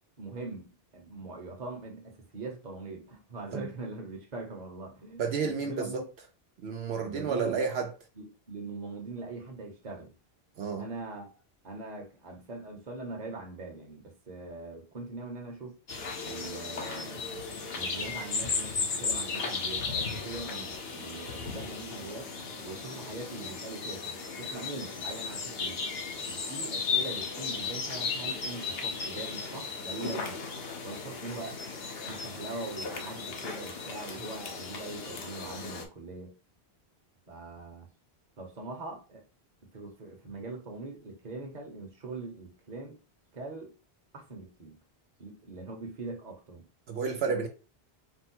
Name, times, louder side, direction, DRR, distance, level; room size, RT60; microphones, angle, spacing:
voice 1, 0.2-6.0 7.0-7.7 8.2-10.1 10.8-11.3 11.6-15.8 16.2-17.3 17.7-22.3 22.6-25.8 26.2-30.5 30.8-31.6 32.0-36.3 37.3-37.9 38.4-39.2 39.7-43.0 43.3-43.7 44.1-44.8 45.2-46.7, right 3 dB, 45° right, 1.0 m, -42 dB
voice 2, 5.2-6.0 6.6-7.9 10.6-10.8 46.9-47.5, right 5 dB, 75° right, 0.9 m, -31 dB
sound 1, 15.9-35.9, left 4 dB, 65° left, 1.1 m, -35 dB
4.6 x 2.1 x 4.4 m
omnidirectional pair, 1.1 m